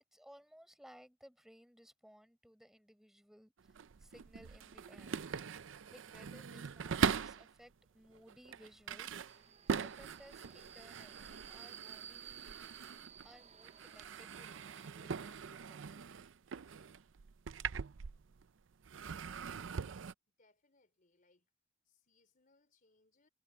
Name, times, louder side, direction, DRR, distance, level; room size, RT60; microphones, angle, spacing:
voice 1, 0.1-5.2 5.9-9.5 9.8-12.5 13.2-15.9, equal, 5° right, 7.6 m, -60 dB
sound 1, 3.6-7.5 8.1-13.4 13.6-18.5 18.8-20.1, right 6 dB, 85° right, 0.5 m, -41 dB
Subway metro underground, 9.3-14.9, right 8 dB, 35° right, 0.7 m, -55 dB
voice 2, 20.4-21.5 21.9-23.3, left 3 dB, 45° left, 4.0 m, -73 dB
head